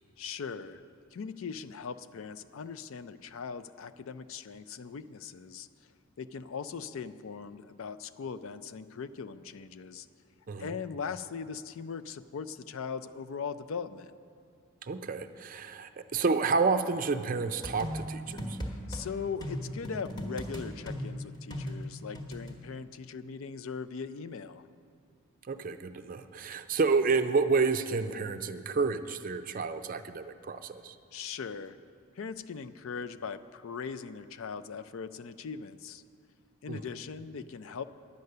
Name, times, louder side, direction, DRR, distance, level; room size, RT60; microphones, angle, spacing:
voice 1, 0.2-0.8 1.1-5.7 6.2-10.1 10.6-14.2 18.6-24.6 31.1-31.8 32.2-36.0 36.6-37.8, left 6 dB, 65° left, 12 dB, 0.4 m, -40 dB
voice 2, 14.8-18.6 25.5-31.0 36.7-36.8, right 4 dB, 40° right, 9 dB, 0.4 m, -30 dB
sound 1, 17.6-19.0 19.4-22.5, equal, 20° left, 1.1 m, -37 dB
10.5 x 9.5 x 6.6 m, 2.3 s
head